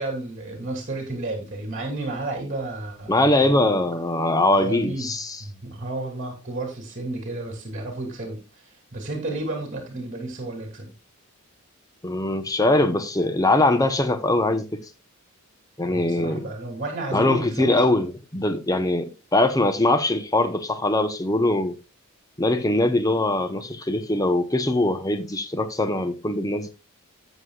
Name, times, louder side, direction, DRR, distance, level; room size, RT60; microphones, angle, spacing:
voice 1, 0.0-3.7 4.5-5.1 5.4-8.6 8.9-10.9 15.9-17.9, right 2 dB, 30° right, 2.8 m, -32 dB
voice 2, 3.1-5.4 12.0-14.8 15.8-16.4 17.1-21.8 22.4-26.7, left 2 dB, 15° left, 0.9 m, -22 dB
13.0 x 8.3 x 2.4 m
head